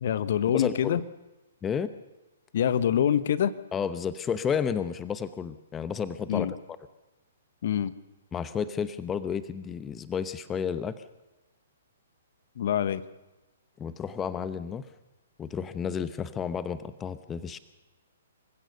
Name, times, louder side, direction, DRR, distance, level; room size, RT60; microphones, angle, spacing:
voice 1, 0.0-1.0 2.5-3.5 6.3-6.5 7.6-7.9 12.6-13.0, left 9 dB, 60° left, 16 dB, 1.1 m, -25 dB
voice 2, 0.5-1.0 1.6-1.9 3.7-6.5 8.3-11.0 13.8-14.9 15.4-17.6, left 7 dB, 15° left, 14 dB, 0.9 m, -31 dB
26.0 x 15.5 x 6.8 m, 1.1 s
hypercardioid pair, 125°, 0 cm